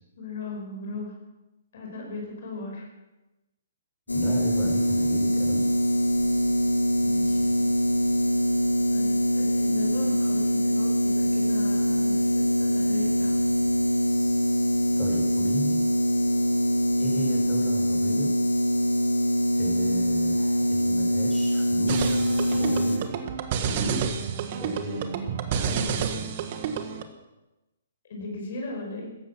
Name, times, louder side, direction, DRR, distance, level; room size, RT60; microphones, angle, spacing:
voice 1, 0.2-1.1 1.7-2.9 7.0-7.7 8.9-13.4 28.1-29.1, left 3 dB, 55° left, 0 dB, 5.4 m, -37 dB
sound 1, 4.1-23.0, equal, 90° left, 2.1 m, -23 dB
voice 2, 4.1-5.7 15.0-15.8 17.0-18.3 19.6-22.0 22.5-23.2 23.5-24.1 24.5-25.1 25.5-26.3, right 2 dB, ahead, -5 dB, 6.3 m, -34 dB
sound 2, 21.9-27.0, right 7 dB, 45° right, 1.6 m, -30 dB
16.0 x 14.0 x 6.0 m, 1.0 s
figure-of-eight pair, 125°, 0 cm